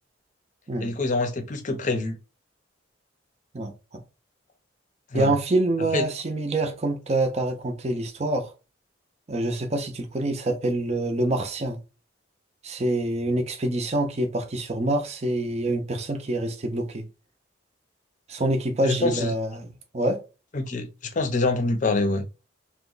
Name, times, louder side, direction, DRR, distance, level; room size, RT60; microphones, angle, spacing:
voice 1, 0.8-2.2 5.1-5.3 5.9-6.0 18.8-19.3 20.5-22.2, left 3 dB, 40° left, 0.6 m, -25 dB
voice 2, 3.5-4.0 5.1-8.5 9.3-11.8 12.6-17.1 18.3-20.2, right 1 dB, 35° right, 0.5 m, -26 dB
2.9 x 2.2 x 3.8 m
head